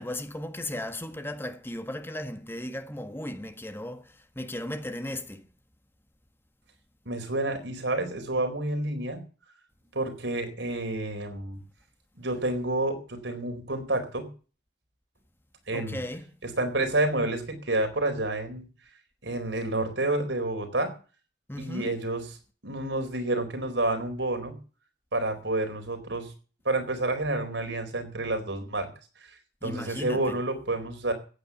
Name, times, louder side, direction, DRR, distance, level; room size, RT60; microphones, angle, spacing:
voice 1, 0.0-5.4 15.7-16.3 21.5-22.0 29.6-30.4, left 1 dB, 15° left, 1.4 m, -36 dB
voice 2, 7.1-9.2 9.9-11.6 12.2-14.3 15.7-16.0 16.4-18.7 19.2-20.9 21.6-22.2 22.6-24.6 25.1-26.3 26.6-28.9 29.6-31.1, right 2 dB, 85° right, 4.3 m, -29 dB
15.0 x 9.2 x 7.2 m
head